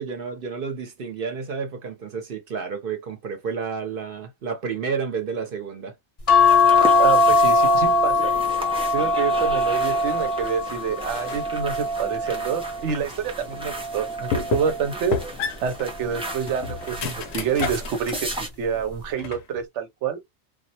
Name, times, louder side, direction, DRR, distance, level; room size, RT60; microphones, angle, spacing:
voice 1, 0.0-5.9, right 5 dB, 55° right, 0.8 m, -30 dB
sound 1, 6.3-12.9 13.5-14.9 16.2-16.6 16.9-17.0, left 3 dB, 35° left, 0.6 m, -21 dB
sound 2, 6.4-18.5, right 1 dB, 10° right, 0.3 m, -36 dB
voice 2, 6.9-8.3 8.9-15.2 15.6-20.2, right 7 dB, 80° right, 0.9 m, -27 dB
sound 3, 11.1-11.5 12.0-13.1 13.6-13.7 14.3-14.8 15.1-18.3 18.7-19.6, left 6 dB, 70° left, 0.8 m, -31 dB
2.3 x 2.1 x 2.7 m
omnidirectional pair, 1.2 m